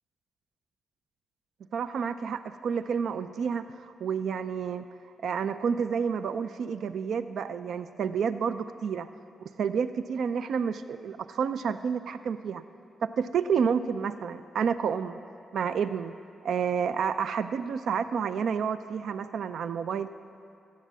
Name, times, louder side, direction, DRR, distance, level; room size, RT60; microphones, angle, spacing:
voice 1, 1.7-4.8 5.2-9.1 9.6-12.6 13.0-15.2 15.5-16.1 16.4-20.1, right 6 dB, 75° right, 12 dB, 0.4 m, -29 dB
14.5 x 7.4 x 8.0 m, 2.6 s
cardioid pair, 65°, 0 cm